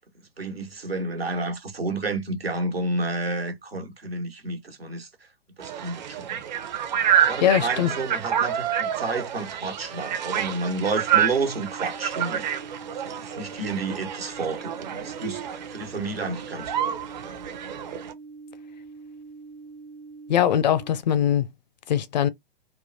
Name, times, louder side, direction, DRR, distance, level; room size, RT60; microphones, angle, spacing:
voice 1, 0.4-5.1 5.6-6.4 6.9-12.6 13.0-16.7 17.2-17.4, right 2 dB, 85° right, 1.3 m, -30 dB
sound 1, 5.6-18.1, right 9 dB, 50° right, 0.7 m, -28 dB
voice 2, 7.4-7.9 20.3-21.5 21.9-22.3, left 10 dB, 50° left, 0.5 m, -21 dB
sound 2, 10.9-20.9, right 3 dB, 10° right, 0.5 m, -44 dB
3.5 x 2.2 x 2.7 m
figure-of-eight pair, 115°, 29 cm